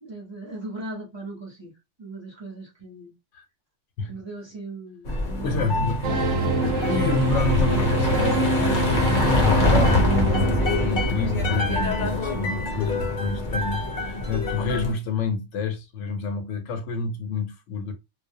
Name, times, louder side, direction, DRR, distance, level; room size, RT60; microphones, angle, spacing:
voice 1, 0.0-1.7 2.0-3.1 4.0-5.7 11.2-11.8, right 2 dB, 25° right, 0.7 m, -38 dB
sound 1, 5.1-14.9, left 2 dB, 50° left, 0.7 m, -25 dB
voice 2, 5.4-17.9, left 4 dB, 90° left, 1.0 m, -29 dB
sound 2, 6.0-11.6, right 2 dB, 85° right, 1.0 m, -25 dB
2.3 x 2.1 x 2.6 m
omnidirectional pair, 1.2 m